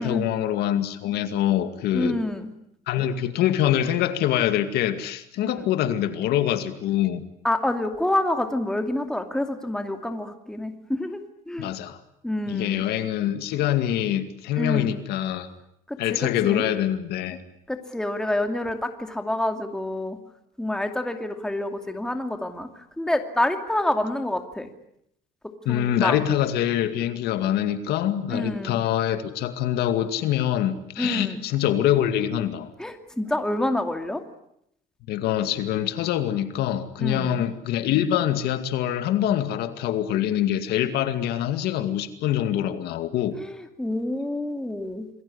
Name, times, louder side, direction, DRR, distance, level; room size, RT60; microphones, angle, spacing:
voice 1, 0.0-2.2 2.9-7.2 11.6-12.0 12.5-15.5 16.0-17.4 25.7-32.7 35.1-43.4, left 11 dB, 75° left, 10 dB, 2.3 m, -24 dB
voice 2, 1.9-2.5 5.4-5.5 7.4-11.7 12.2-12.8 14.6-14.9 15.9-16.6 17.7-20.2 20.6-24.7 25.7-26.2 28.3-28.8 31.0-31.4 32.8-34.2 37.0-37.4 43.3-45.2, left 1 dB, 5° left, 6 dB, 2.5 m, -28 dB
28.0 x 21.0 x 9.8 m, 0.76 s
cardioid pair, 155°, 17 cm